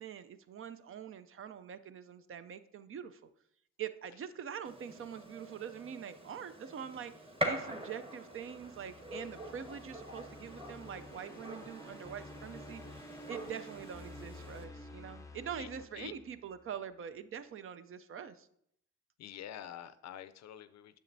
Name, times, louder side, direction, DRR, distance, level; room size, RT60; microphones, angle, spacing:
voice 1, 0.0-3.2 3.8-18.5, right 8 dB, 45° right, 13 dB, 0.5 m, -44 dB
Gunshot gunfire, 4.6-14.6, equal, 20° right, 1.3 m, -44 dB
sound 1, 8.4-16.7, left 1 dB, 10° left, 0.5 m, -51 dB
voice 2, 19.2-21.0, left 10 dB, 60° left, 13 dB, 0.5 m, -47 dB
8.9 x 6.8 x 2.6 m, 0.72 s
cardioid pair, 90°, 30 cm